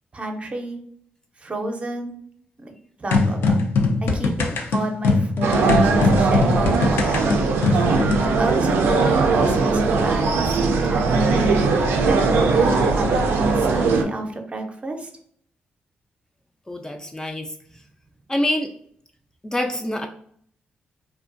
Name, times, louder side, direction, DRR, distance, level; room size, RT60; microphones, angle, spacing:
voice 1, 0.1-0.8 1.4-2.1 2.6-2.7 3.0-3.6 4.0-8.0 8.4-11.6 12.6-15.1, right 1 dB, 35° right, 4 dB, 0.5 m, -30 dB
sound 1, 3.1-8.3, left 3 dB, 80° left, 0.4 m, -21 dB
sound 2, 5.4-14.0, right 4 dB, 90° right, 0.3 m, -19 dB
voice 2, 16.7-17.5 18.3-18.7 19.4-20.1, left 1 dB, 15° left, 3 dB, 0.3 m, -25 dB
2.4 x 2.2 x 2.4 m, 0.63 s
cardioid pair, 65°, 4 cm